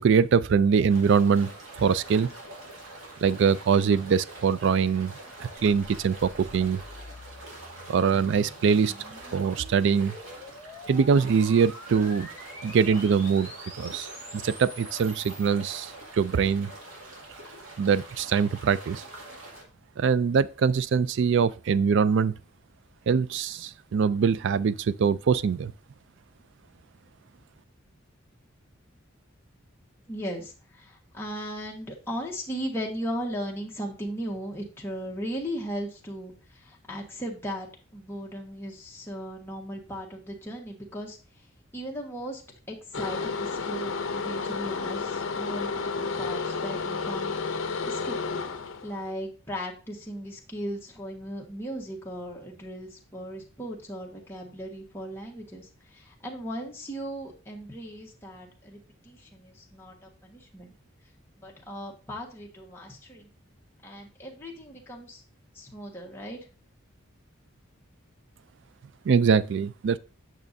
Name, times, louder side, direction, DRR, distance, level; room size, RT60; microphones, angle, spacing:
voice 1, 0.0-1.5 1.8-2.3 3.2-5.1 5.4-6.8 7.9-8.9 9.3-10.1 10.9-12.3 12.6-13.5 13.8-16.7 17.8-19.0 20.0-22.3 23.1-25.7 69.1-70.0, right 6 dB, 60° right, 0.3 m, -23 dB
sound 1, 0.9-19.6, right 2 dB, 75° right, 2.3 m, -45 dB
sound 2, 5.6-15.5, equal, 35° right, 2.2 m, -46 dB
voice 2, 30.1-36.3 36.6-41.2 41.7-42.4 42.7-47.3 47.8-48.2 48.8-60.0 60.2-60.7 61.4-63.3 63.8-65.2 65.5-66.4, equal, 10° left, 1.4 m, -37 dB
sound 3, 42.9-49.1, left 4 dB, 70° left, 0.7 m, -31 dB
9.0 x 6.1 x 2.7 m
head